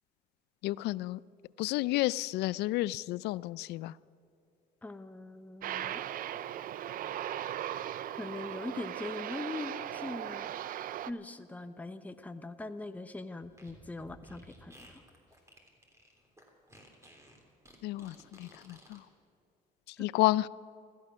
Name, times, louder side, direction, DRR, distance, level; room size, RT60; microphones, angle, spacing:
voice 1, 0.6-1.2 1.6-3.9 17.8-19.0 19.9-20.5, left 18 dB, 80° left, 20 dB, 0.4 m, -31 dB
voice 2, 4.8-6.0 8.2-10.5 11.1-15.0 20.0-20.1, left 2 dB, 10° left, 8 dB, 0.8 m, -41 dB
Aircraft, 5.6-11.1, right 11 dB, 55° right, 0.5 m, -38 dB
Fart, 13.5-19.0, right 1 dB, 15° right, 3.3 m, -56 dB
16.0 x 14.5 x 6.3 m, 2.6 s
cardioid pair, 110°, 17 cm